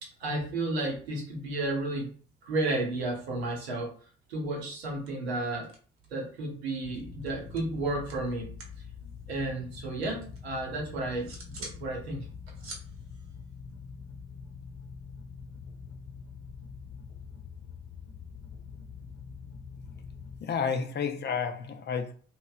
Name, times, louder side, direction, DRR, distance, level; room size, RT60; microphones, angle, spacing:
voice 1, 0.0-2.1 2.4-4.0 4.3-5.7 6.1-8.5 9.3-12.2, right 2 dB, 75° right, 0.9 m, -32 dB
sound 1, 4.6-4.8 5.1-6.3 6.6-8.8 9.1-10.4 10.8-11.8 12.2-14.3, right 3 dB, 45° right, 1.0 m, -48 dB
sound 2, 6.8-20.4, left 5 dB, 70° left, 0.9 m, -45 dB
voice 2, 20.4-22.1, left 6 dB, 35° left, 0.5 m, -31 dB
3.0 x 2.9 x 2.3 m
figure-of-eight pair, 45°, 32 cm